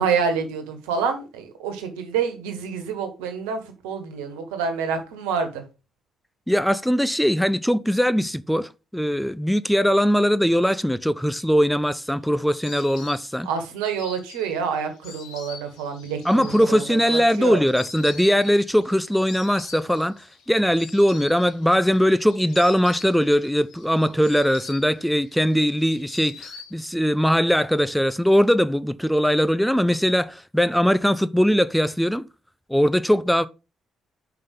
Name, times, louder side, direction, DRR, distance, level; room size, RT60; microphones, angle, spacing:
voice 1, 0.0-5.6 13.4-17.6, right 6 dB, 80° right, 1.4 m, -27 dB
voice 2, 6.5-13.5 16.2-32.3 32.7-33.5, equal, ahead, 0.5 m, -20 dB
Insect, 11.5-27.2 27.4-28.3, left 6 dB, 70° left, 1.4 m, -44 dB
5.7 x 5.5 x 5.2 m
hypercardioid pair, 50°, 0 cm